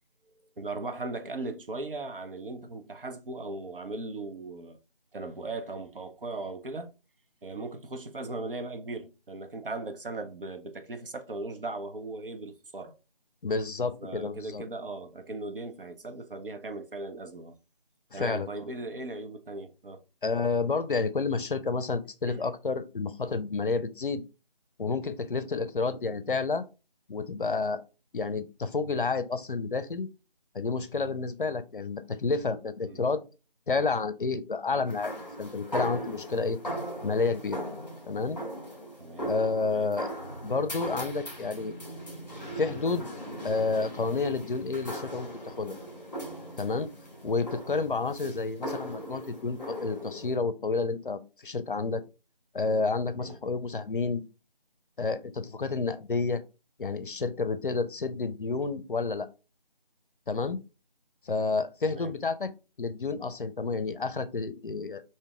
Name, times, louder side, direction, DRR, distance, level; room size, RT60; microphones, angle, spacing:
voice 1, 0.6-4.8 5.1-7.0 7.4-13.0 14.0-17.6 18.1-20.0 22.3-22.5 32.8-33.0 39.0-39.3 39.6-39.9 48.2-48.4 53.2-53.4 61.9-62.2, right 2 dB, 65° right, 0.7 m, -38 dB
voice 2, 13.4-14.6 18.1-18.5 20.2-24.2 24.8-26.6 27.1-27.8 28.1-30.1 30.5-33.2 33.7-35.1 35.4-36.6 37.0-37.6 38.1-38.4 39.2-40.1 40.4-41.8 42.6-43.1 43.4-45.8 46.6-46.9 47.2-52.0 52.5-54.2 55.0-56.4 56.8-59.3 60.3-60.6 61.3-62.5 62.8-65.0, left 4 dB, 65° left, 0.5 m, -30 dB
sound 1, 34.9-50.3, equal, 20° left, 1.5 m, -39 dB
5.2 x 2.6 x 2.3 m
figure-of-eight pair, 170°, 29 cm